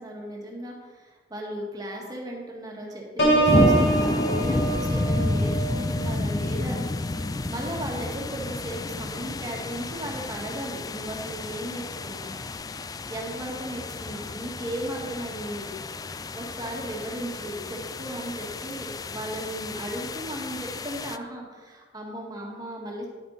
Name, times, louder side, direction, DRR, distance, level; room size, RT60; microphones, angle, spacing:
voice 1, 0.0-6.9 7.5-12.4 13.1-15.8 16.4-23.1, right 1 dB, 20° right, -1 dB, 1.9 m, -36 dB
Piano, 3.2-8.8 9.3-9.6, right 3 dB, 75° left, 2.4 m, -27 dB
Rain And Thunder In The Forest, 3.5-21.2, left 2 dB, 20° left, 0.3 m, -30 dB
10.5 x 9.3 x 4.1 m, 1.4 s
head